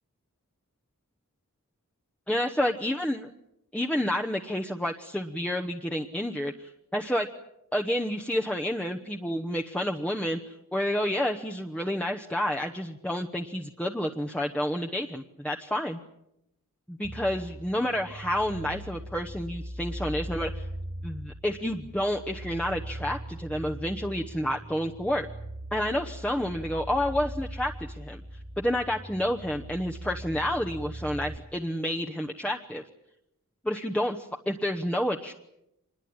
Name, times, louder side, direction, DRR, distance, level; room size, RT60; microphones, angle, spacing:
voice 1, 2.3-3.3 3.7-7.3 7.7-16.0 16.9-20.7 21.0-25.3 25.7-28.2 28.6-32.8 33.6-35.3, equal, 5° left, 2 dB, 0.9 m, -29 dB
sound 1, 17.0-31.4, right 1 dB, 40° right, 1.7 m, -40 dB
26.0 x 21.0 x 8.7 m, 0.82 s
head